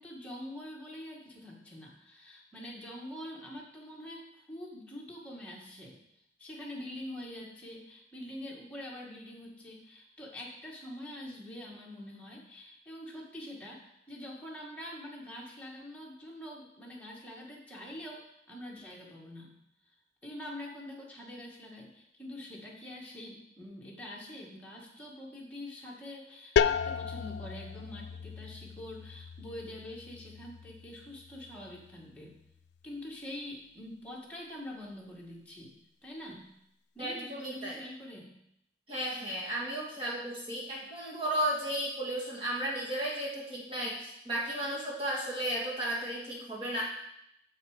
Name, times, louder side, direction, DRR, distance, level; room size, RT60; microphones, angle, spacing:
voice 1, 0.0-6.0 6.4-19.5 20.2-32.4 32.8-35.7 36.0-36.5 36.9-38.3, left 1 dB, 5° left, -4 dB, 1.8 m, -45 dB
sound 1, 26.6-32.1, left 7 dB, 70° left, 0.3 m, -34 dB
voice 2, 37.0-37.8 38.9-46.8, right 1 dB, 30° right, -5 dB, 1.8 m, -34 dB
7.5 x 6.9 x 5.0 m, 0.77 s
head